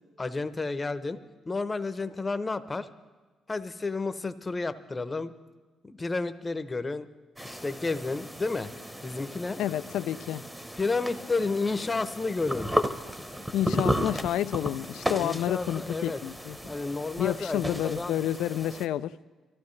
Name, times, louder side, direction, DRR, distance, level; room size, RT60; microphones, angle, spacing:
voice 1, 0.2-1.2 1.5-2.9 3.5-5.3 5.8-7.1 7.4-8.7 9.0-9.6 10.7-12.7 15.2-16.2 16.7-18.2, left 3 dB, 25° left, 0.8 m, -31 dB
sound 1, 7.4-18.9, equal, 5° right, 0.9 m, -34 dB
voice 2, 9.6-10.4 13.5-16.6 17.2-19.1, left 12 dB, 85° left, 0.4 m, -29 dB
23.5 x 14.5 x 3.2 m
cardioid pair, 90°, 0 cm